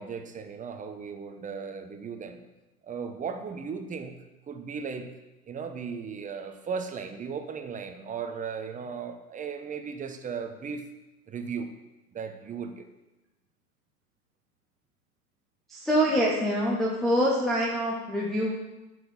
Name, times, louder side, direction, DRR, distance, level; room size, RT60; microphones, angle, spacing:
voice 1, 0.0-2.4 2.8-4.2 4.5-5.1 5.5-10.9 11.3-11.7 12.1-12.9, right 6 dB, 15° right, 6 dB, 1.2 m, -36 dB
voice 2, 15.7-18.5, equal, ahead, -4 dB, 0.3 m, -25 dB
11.5 x 6.2 x 7.4 m, 1.1 s
hypercardioid pair, 110°, 48 cm